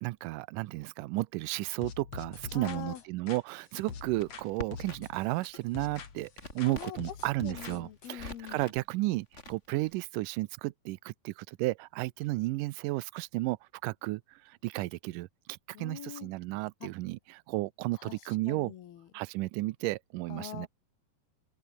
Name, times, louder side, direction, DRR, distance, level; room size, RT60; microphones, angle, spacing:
voice 1, 0.0-13.6 13.8-18.7 19.1-20.7, right 20 dB, 85° right, 1.9 m, -33 dB
sound 1, 1.8-4.5 4.7-6.3 6.6-8.2, left 6 dB, 45° left, 3.5 m, -45 dB
voice 2, 2.5-3.0 6.7-7.0 7.4-8.7 15.7-16.3 16.8-16.9 18.0-18.2 18.5-19.1 20.3-20.7, left 11 dB, 75° left, 3.7 m, -43 dB
Crackle, 3.8-5.2 5.5-7.1 7.5-8.8 9.3-9.9, left 2 dB, 15° left, 5.5 m, -46 dB
open air
omnidirectional pair, 4.5 m